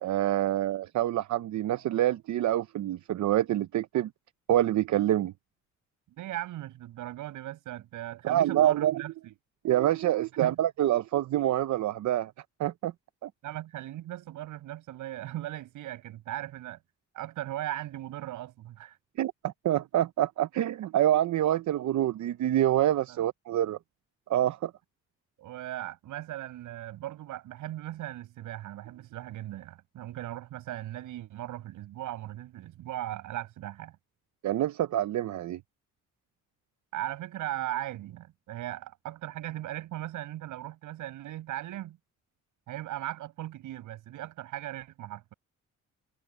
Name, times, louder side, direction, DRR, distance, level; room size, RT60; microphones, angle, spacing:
voice 1, 0.0-4.1 4.5-5.3 8.2-9.0 9.6-12.3 12.6-12.9 13.2-13.3 19.2-23.8 24.3-24.7 34.4-35.6, right 12 dB, 70° right, 0.8 m, -26 dB
voice 2, 6.1-9.3 10.4-10.6 13.4-16.8 17.1-19.0 23.1-23.2 25.4-34.0 36.9-42.0 42.7-45.3, right 14 dB, 85° right, 7.6 m, -38 dB
cardioid pair, 90°, 30 cm